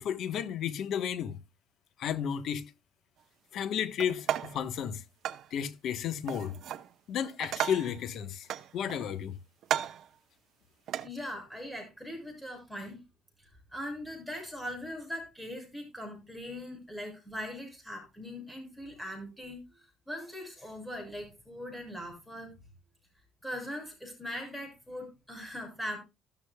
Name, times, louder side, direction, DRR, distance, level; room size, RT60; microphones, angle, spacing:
voice 1, 0.0-1.4 2.0-2.7 3.5-5.0 5.5-6.6 7.1-8.5 8.7-9.4, left 8 dB, 60° left, 1.2 m, -33 dB
sound 1, 4.0-4.6 5.2-5.5 6.3-6.9 7.2-8.0 8.5-9.2 9.6-10.1 10.9-11.1, right 10 dB, 60° right, 0.8 m, -34 dB
voice 2, 11.0-13.0 13.4-22.6 23.4-26.0, left 1 dB, ahead, 7.1 m, -41 dB
13.5 x 13.0 x 2.3 m
cardioid pair, 125°, 0 cm